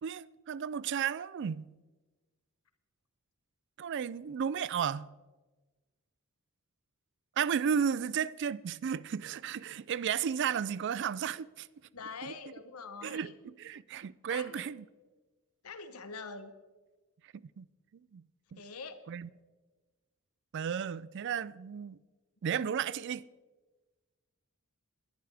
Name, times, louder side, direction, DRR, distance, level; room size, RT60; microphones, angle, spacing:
voice 1, 0.0-1.7 3.8-5.1 7.4-11.7 12.2-12.3 13.0-14.8 17.3-17.7 18.1-18.2 18.5-18.6 19.1-19.3 20.5-22.0 22.4-23.3, right 7 dB, 50° right, 0.3 m, -33 dB
voice 2, 11.9-13.3 14.3-14.6 15.6-16.5 18.6-19.0, left 4 dB, 80° left, 1.0 m, -44 dB
21.5 x 11.5 x 3.4 m
head